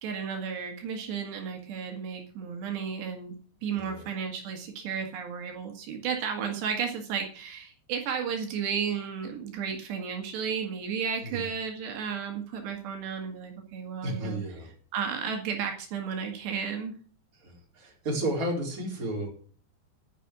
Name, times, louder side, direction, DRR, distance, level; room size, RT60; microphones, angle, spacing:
voice 1, 0.0-3.4 3.6-14.4 14.9-16.9, right 7 dB, 70° right, 3 dB, 3.8 m, -33 dB
voice 2, 3.7-4.1 11.2-11.4 14.0-14.7 17.4-19.3, right 1 dB, 20° right, -1 dB, 4.0 m, -33 dB
11.0 x 10.5 x 6.1 m, 0.41 s
omnidirectional pair, 5.1 m